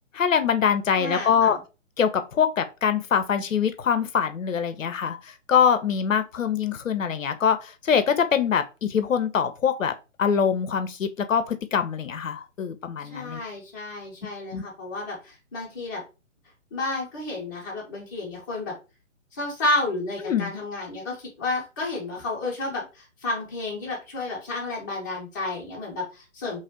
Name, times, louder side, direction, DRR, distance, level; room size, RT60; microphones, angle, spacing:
voice 1, 0.1-1.6 2.0-9.9 10.2-13.4 14.5-14.6 20.3-20.5, left 7 dB, 75° left, 0.5 m, -24 dB
voice 2, 1.0-1.6 13.1-16.0 16.7-18.8 19.3-26.6, left 2 dB, 15° left, 0.7 m, -31 dB
2.9 x 2.4 x 2.8 m
figure-of-eight pair, 135°, 39 cm